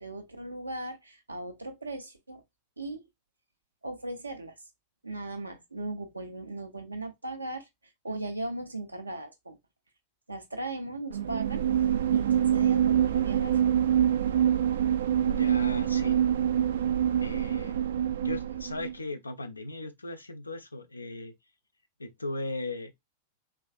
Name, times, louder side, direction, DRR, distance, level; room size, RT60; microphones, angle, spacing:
voice 1, 0.0-2.4 2.8-3.0 3.8-4.5 5.0-7.7 8.0-9.6 10.3-11.6 12.1-13.6, right 2 dB, 80° right, 0.8 m, -37 dB
sound 1, 11.1-18.9, right 10 dB, 65° right, 0.4 m, -25 dB
voice 2, 15.2-16.2 17.2-17.8 18.2-21.3 22.0-22.9, left 2 dB, 80° left, 0.5 m, -37 dB
3.4 x 3.2 x 2.3 m
figure-of-eight pair, 90°, 0 cm